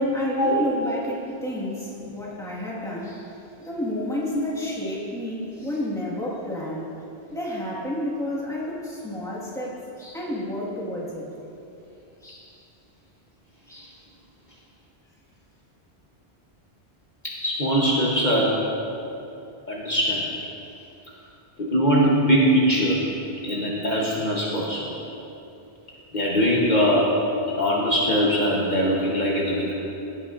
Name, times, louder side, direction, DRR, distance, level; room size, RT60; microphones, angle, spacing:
voice 1, 0.0-3.3 3.6-6.9 7.3-11.2 12.2-12.5 13.7-14.0, left 1 dB, 5° left, -6 dB, 1.6 m, -31 dB
voice 2, 17.4-18.5 19.7-20.2 21.6-23.0 23.4-25.0 26.1-27.1 27.5-29.7, equal, 45° left, -4 dB, 1.1 m, -21 dB
16.0 x 8.4 x 2.5 m, 2.8 s
omnidirectional pair, 1.1 m